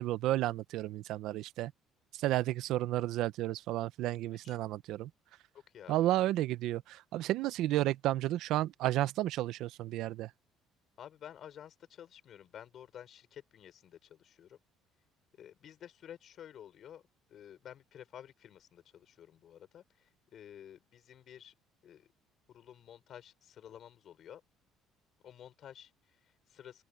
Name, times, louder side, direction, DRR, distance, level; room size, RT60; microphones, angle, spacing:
voice 1, 0.0-1.7 2.1-5.1 5.9-10.3, right 15 dB, 70° right, 0.8 m, -32 dB
voice 2, 5.7-6.1 11.0-14.6 15.4-17.0 17.3-21.5 21.8-22.1 22.5-24.4 25.2-26.8, left 10 dB, 50° left, 6.2 m, -52 dB
open air
cardioid pair, 130°, 0 cm